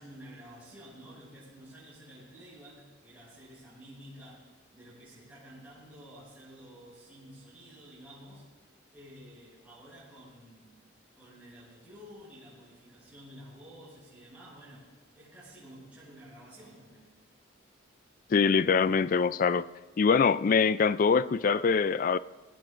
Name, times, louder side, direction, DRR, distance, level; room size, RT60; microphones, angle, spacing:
voice 1, 0.0-8.5 8.9-10.8 11.1-17.1, equal, 5° right, 6.0 m, -51 dB
voice 2, 18.3-19.7 20.0-22.2, left 5 dB, 45° left, 0.3 m, -24 dB
21.5 x 17.0 x 2.5 m
head